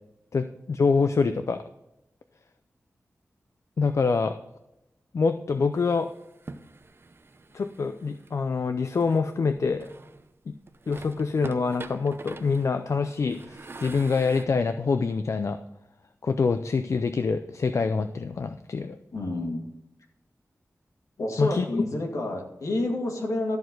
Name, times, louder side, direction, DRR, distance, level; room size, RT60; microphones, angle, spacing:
voice 1, 0.3-1.6 3.8-4.4 5.1-6.1 7.5-9.9 10.5-10.6 10.9-15.6 16.2-19.0 21.4-21.6, left 4 dB, 65° left, 9 dB, 0.5 m, -25 dB
sound 1, 5.7-8.3 9.0-10.3 10.7-14.4, right 3 dB, 45° right, 0.8 m, -44 dB
voice 2, 19.1-19.7 21.2-23.6, left 2 dB, 80° left, 1 dB, 2.1 m, -29 dB
13.0 x 4.6 x 6.2 m, 0.91 s
wide cardioid pair, 85°, 5 cm